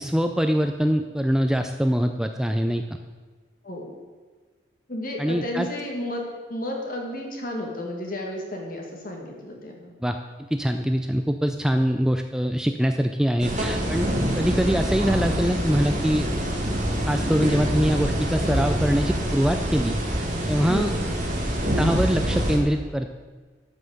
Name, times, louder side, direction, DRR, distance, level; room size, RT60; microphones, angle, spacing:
voice 1, 0.0-3.0 5.2-5.7 10.0-10.2 10.5-14.1 14.4-16.3 17.0-20.9 21.8-23.2, equal, 5° right, 6 dB, 0.4 m, -23 dB
voice 2, 4.9-6.2 6.5-9.9 20.7-21.0, left 1 dB, 50° left, 0 dB, 2.2 m, -32 dB
sound 1, 13.4-22.6, equal, 45° right, 2.4 m, -25 dB
13.0 x 5.8 x 6.6 m, 1.4 s
head